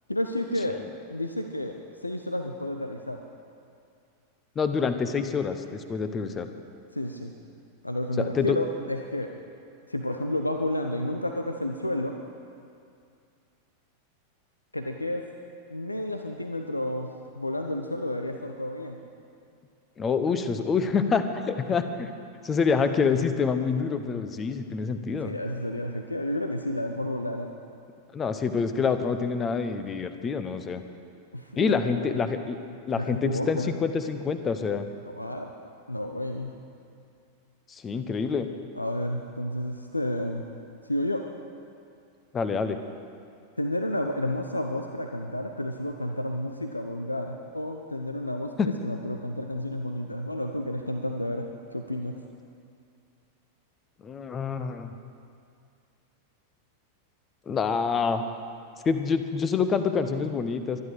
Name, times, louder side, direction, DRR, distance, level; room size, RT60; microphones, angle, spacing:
voice 1, 0.1-0.8 1.1-1.7 2.0-3.2 6.9-7.3 7.8-9.3 9.9-12.2 14.7-15.3 15.7-19.0 25.2-27.5 31.3-32.2 32.9-33.7 35.0-35.5 35.9-36.5 38.8-40.4 40.9-41.2 43.6-52.1, left 1 dB, 85° left, 5 dB, 0.8 m, -31 dB
voice 2, 4.5-6.5 8.2-8.6 20.0-22.1 22.4-25.3 28.1-30.8 31.6-32.6 32.9-34.9 37.7-38.5 42.3-42.8 48.6-48.7 54.0-54.9 57.5-58.2 58.8-60.8, left 5 dB, 20° left, 9 dB, 1.1 m, -26 dB
23.5 x 11.0 x 5.0 m, 2.4 s
figure-of-eight pair, 90°, 0 cm